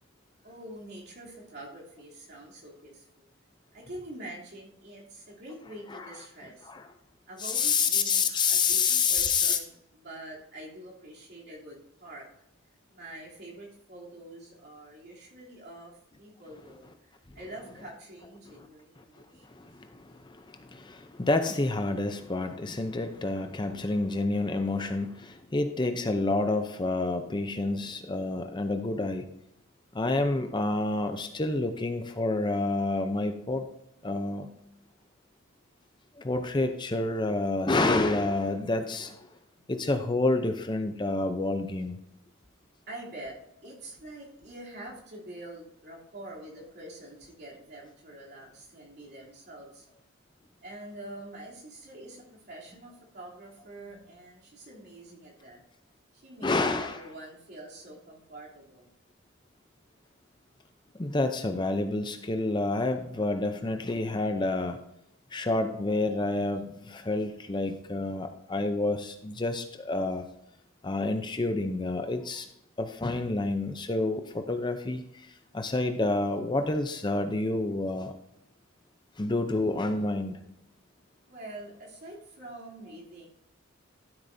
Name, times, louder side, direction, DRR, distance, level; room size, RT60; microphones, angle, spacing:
voice 1, 0.4-3.3 3.7-6.7 7.3-12.3 12.9-19.5 23.1-23.2 39.6-39.7 42.9-43.4 43.6-49.8 50.6-55.6 56.1-58.9 81.3-83.3, right 1 dB, 50° right, -4 dB, 3.1 m, -46 dB
voice 2, 5.6-6.9 7.4-9.6 16.5-16.8 17.4-17.8 18.5-18.7 19.0-19.1 19.4-29.3 29.9-33.7 34.0-34.5 36.2-39.3 39.7-42.0 56.4-57.2 60.9-64.8 65.3-70.3 70.8-72.5 72.8-78.1 79.2-80.4, left 3 dB, 20° left, 7 dB, 0.6 m, -29 dB
13.0 x 7.9 x 2.7 m, 0.79 s
head